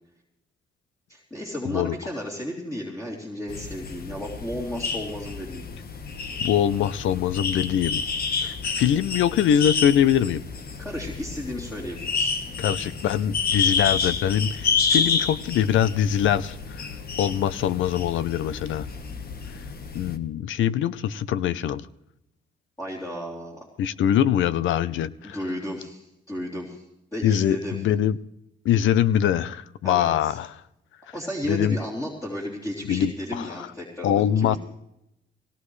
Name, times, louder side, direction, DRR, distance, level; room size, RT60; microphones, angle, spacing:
voice 1, 1.1-5.7 10.8-12.3 22.8-23.7 25.2-26.8 27.1-27.8 29.8-30.4 31.0-34.6, equal, 15° left, -5 dB, 3.3 m, -33 dB
sound 1, 3.5-20.2, left 5 dB, 50° left, 1.4 m, -29 dB
voice 2, 6.4-8.0 8.4-10.4 12.6-16.9 17.2-18.9 19.9-21.9 23.8-25.4 27.2-28.2 28.6-30.5 31.5-31.8 32.9-33.5 34.0-34.6, left 10 dB, 75° left, 17 dB, 0.7 m, -23 dB
19.0 x 18.0 x 3.3 m, 0.84 s
cardioid pair, 90°, 20 cm